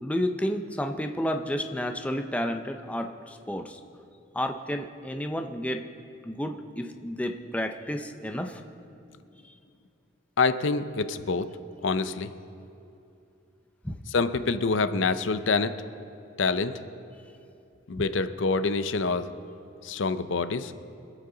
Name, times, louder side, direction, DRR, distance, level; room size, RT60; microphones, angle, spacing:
voice 1, 0.0-3.8 4.3-5.8 6.2-8.6 13.8-14.0, equal, 5° left, 5 dB, 0.6 m, -31 dB
voice 2, 10.4-11.5 11.8-12.3 14.1-15.7 16.4-16.8 17.9-19.3 19.8-20.7, left 4 dB, 70° left, 11 dB, 0.6 m, -26 dB
25.0 x 8.5 x 3.9 m, 2.7 s
head